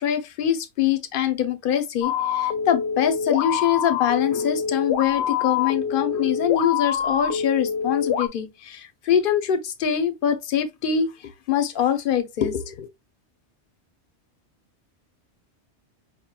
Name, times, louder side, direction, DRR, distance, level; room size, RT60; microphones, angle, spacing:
voice 1, 0.0-12.9, left 9 dB, 55° left, 0.8 m, -24 dB
sound 1, 2.0-8.3, left 7 dB, 85° left, 0.9 m, -25 dB
4.9 x 3.0 x 2.2 m
omnidirectional pair, 1.2 m